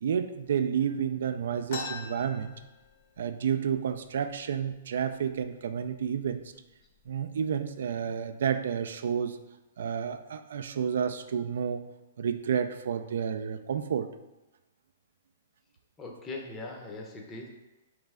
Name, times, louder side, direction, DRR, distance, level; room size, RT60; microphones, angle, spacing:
voice 1, 0.0-2.5 3.2-6.4 7.1-9.4 9.8-11.8 12.2-14.1, right 7 dB, 70° right, 9 dB, 0.3 m, -30 dB
sound 1, 1.7-3.3 3.6-3.7 4.0-4.6 5.2-5.4 6.1-6.2 6.7-7.2, left 4 dB, 60° left, 0.9 m, -41 dB
voice 2, 16.0-17.5, left 2 dB, 20° left, 0 dB, 0.6 m, -40 dB
3.9 x 3.2 x 3.5 m, 1.0 s
hypercardioid pair, 135°, 0 cm